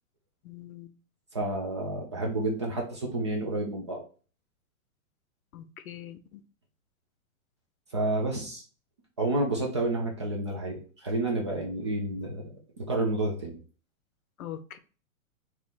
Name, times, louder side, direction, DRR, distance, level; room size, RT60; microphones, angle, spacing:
voice 1, 0.4-0.9 5.5-6.4 14.4-14.8, left 11 dB, 80° left, 0.7 m, -42 dB
voice 2, 1.3-4.0 7.9-8.6 9.2-12.5 12.8-13.6, right 2 dB, 25° right, 0.3 m, -30 dB
3.5 x 2.8 x 4.0 m
hypercardioid pair, 155°, 42 cm